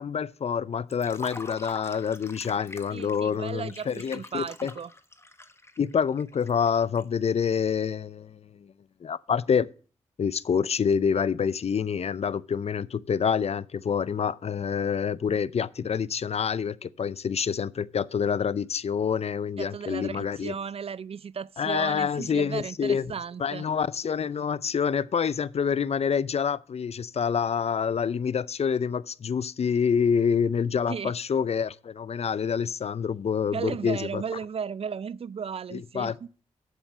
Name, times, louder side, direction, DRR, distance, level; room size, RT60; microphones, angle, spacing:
voice 1, 0.0-4.7 5.8-8.4 9.0-9.7 10.2-20.5 21.6-23.1 23.4-34.2 35.7-36.2, left 7 dB, 50° left, 0.5 m, -27 dB
Liquid, 0.9-7.0, left 2 dB, 20° left, 1.2 m, -45 dB
voice 2, 2.9-4.9 19.6-23.7 30.9-31.1 33.5-36.3, right 6 dB, 45° right, 0.4 m, -35 dB
8.2 x 7.9 x 6.2 m
supercardioid pair, 45°, 14 cm